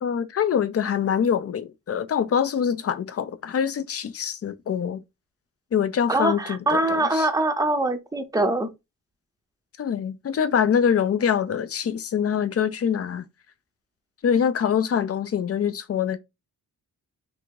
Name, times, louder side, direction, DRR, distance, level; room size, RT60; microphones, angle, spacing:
voice 1, 0.0-5.0 5.7-7.3 9.8-13.2 14.2-16.2, left 7 dB, 45° left, 0.5 m, -24 dB
voice 2, 6.1-8.7, right 2 dB, 10° right, 0.6 m, -23 dB
3.5 x 2.6 x 4.6 m
wide cardioid pair, 175°, 33 cm